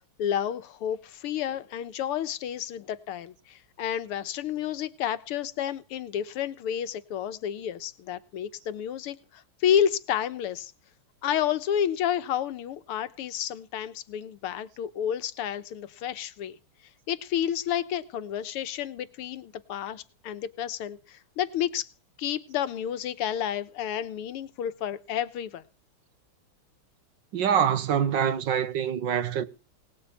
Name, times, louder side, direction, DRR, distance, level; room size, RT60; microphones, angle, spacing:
voice 1, 0.2-10.7 11.2-16.6 17.1-21.9 22.2-25.6, left 9 dB, 85° left, 1.9 m, -30 dB
voice 2, 27.3-29.4, right 8 dB, 65° right, 1.5 m, -25 dB
18.5 x 7.0 x 8.3 m
omnidirectional pair, 2.4 m